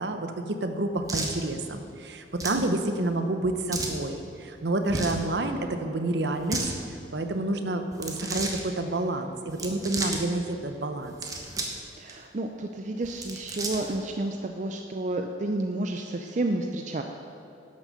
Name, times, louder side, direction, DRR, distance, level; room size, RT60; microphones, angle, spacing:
voice 1, 0.0-6.6 7.1-11.1, right 2 dB, 65° right, 7 dB, 0.8 m, -29 dB
sound 1, 1.1-1.4 2.3-2.6 3.7-4.0 4.8-5.2 6.3-6.7 7.9-8.6 9.5-10.2 11.0-11.8 12.1-12.2 13.0-14.0, right 2 dB, 20° right, 1.0 m, -32 dB
voice 2, 12.0-17.0, right 2 dB, 40° right, 4 dB, 0.5 m, -30 dB
11.5 x 6.4 x 6.7 m, 3.0 s
head